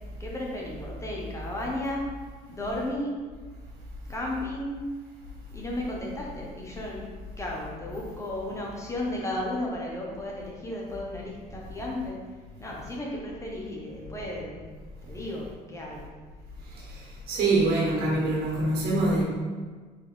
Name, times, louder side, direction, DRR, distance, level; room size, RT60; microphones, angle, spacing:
voice 1, 0.2-2.0 2.5-3.1 4.1-4.8 5.5-12.2 12.6-14.7 15.0-16.1, left 1 dB, 20° left, -3 dB, 1.1 m, -34 dB
voice 2, 16.9-19.2, right 2 dB, 65° right, -4 dB, 1.2 m, -25 dB
3.7 x 3.0 x 3.9 m, 1.5 s
supercardioid pair, 80°, 16 cm